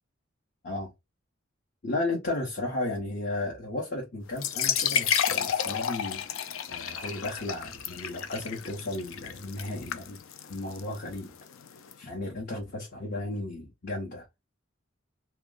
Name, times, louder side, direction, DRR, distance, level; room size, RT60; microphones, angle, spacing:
voice 1, 1.8-10.2 10.5-11.3 12.0-14.3, left 2 dB, 50° left, 0.9 m, -34 dB
sound 1, 4.3-11.9, left 8 dB, 80° left, 0.5 m, -31 dB
3.0 x 2.3 x 3.8 m
head